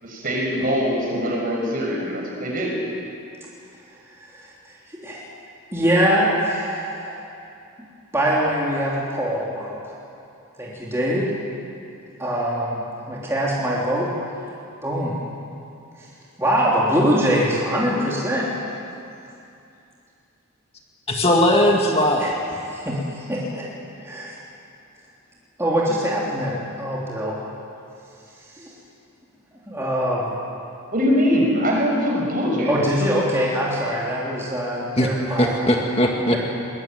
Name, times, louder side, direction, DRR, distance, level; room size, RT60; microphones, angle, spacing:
voice 1, 0.0-2.8 30.9-32.7, equal, 40° right, -2 dB, 6.3 m, -22 dB
voice 2, 4.2-5.2 5.7-7.2 8.1-10.0 10.6-11.3 12.2-14.1 14.8-15.2 16.0-16.1 16.4-18.5 22.2-22.4 22.6-23.7 24.0-24.3 25.6-27.4 28.6-28.7 29.7-30.3 32.7-35.5 36.3-36.4, equal, 10° right, -6 dB, 3.3 m, -23 dB
voice 3, 21.1-22.3 35.0-36.4, left 1 dB, 25° left, 0 dB, 2.0 m, -19 dB
22.5 x 21.0 x 9.3 m, 2.6 s
head